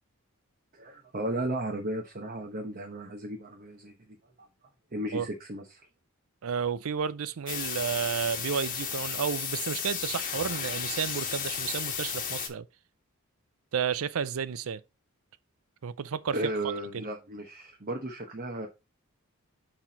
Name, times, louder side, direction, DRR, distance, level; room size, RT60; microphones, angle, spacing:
voice 1, 0.7-4.0 4.4-4.5 4.9-5.8 16.3-18.7, right 1 dB, 40° right, 1.0 m, -34 dB
voice 2, 6.4-12.7 13.7-14.8 15.8-16.4 16.9-17.0, right 7 dB, 70° right, 0.5 m, -32 dB
sound 1, 7.5-12.5, left 7 dB, 40° left, 1.3 m, -34 dB
5.9 x 4.5 x 4.1 m
head